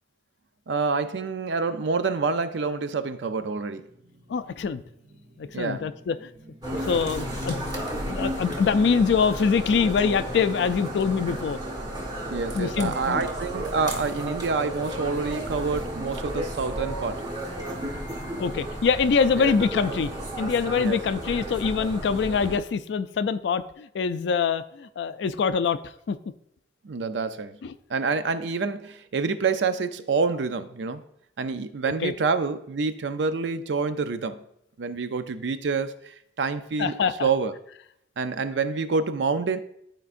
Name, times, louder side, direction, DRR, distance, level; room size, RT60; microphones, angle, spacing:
voice 1, 0.7-3.9 5.5-5.9 12.3-17.3 19.4-19.5 20.8-21.0 26.8-27.6 27.9-31.0 31.4-34.4 34.8-37.5 38.2-39.6, right 4 dB, 75° right, 11 dB, 0.5 m, -27 dB
sound 1, 1.3-10.6, right 1 dB, 50° right, 0.8 m, -51 dB
voice 2, 4.3-4.8 5.4-6.3 6.7-7.6 8.1-11.6 12.5-13.2 18.4-20.1 20.4-25.8 26.1-26.2 27.6-27.7 32.0-32.1 36.8-37.3, left 5 dB, 70° left, 11 dB, 0.3 m, -24 dB
sound 2, 6.6-22.6, right 1 dB, 25° right, 1.2 m, -33 dB
12.0 x 4.5 x 2.5 m, 0.76 s
head